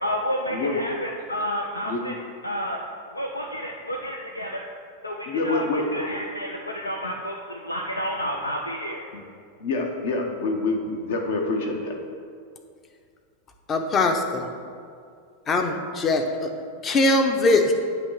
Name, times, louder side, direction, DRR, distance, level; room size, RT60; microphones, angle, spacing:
voice 1, 0.0-2.8 3.1-4.6 5.0-9.0, equal, 85° left, 1 dB, 0.4 m, -30 dB
voice 2, 5.3-6.0 9.1-9.2 9.6-11.9, left 3 dB, 55° left, 2 dB, 1.0 m, -26 dB
voice 3, 13.7-14.5 15.5-16.5 16.8-17.7, left 2 dB, 25° left, 5 dB, 0.7 m, -21 dB
8.1 x 3.2 x 6.2 m, 2.3 s
figure-of-eight pair, 90°, 0 cm